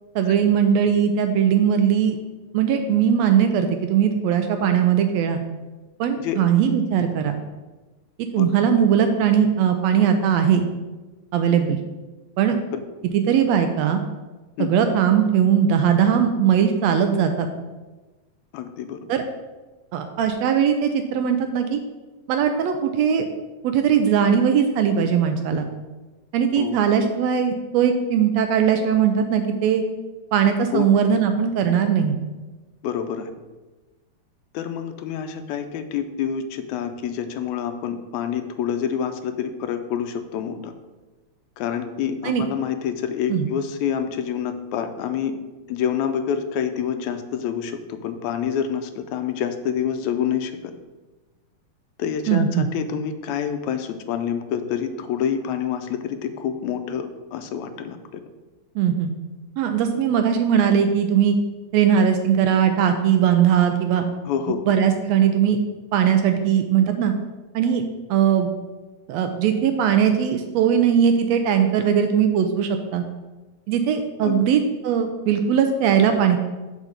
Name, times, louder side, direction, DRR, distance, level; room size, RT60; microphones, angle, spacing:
voice 1, 0.1-2.2 2.5-5.4 6.0-7.4 8.2-10.6 11.3-11.8 12.4-12.6 13.1-14.0 14.6-17.5 19.1-19.2 19.9-21.8 22.3-23.3 23.6-25.7 26.3-29.8 30.3-32.2 42.2-42.4 43.3-43.5 52.3-52.7 58.7-59.1 59.6-61.4 61.7-64.0 64.7-65.6 65.9-67.1 67.5-67.8 68.1-68.5 69.1-73.0 73.7-76.4, right 8 dB, 80° right, 7 dB, 1.6 m, -19 dB
voice 2, 6.1-6.5 8.4-8.5 12.7-12.8 14.6-14.7 18.5-19.0 26.6-26.8 30.7-30.9 32.8-33.3 34.5-40.7 41.6-45.3 45.7-50.7 52.0-58.0 64.3-64.6 74.2-74.4, left 8 dB, 85° left, 8 dB, 1.9 m, -27 dB
7.4 x 4.0 x 6.6 m, 1.2 s
omnidirectional pair, 3.3 m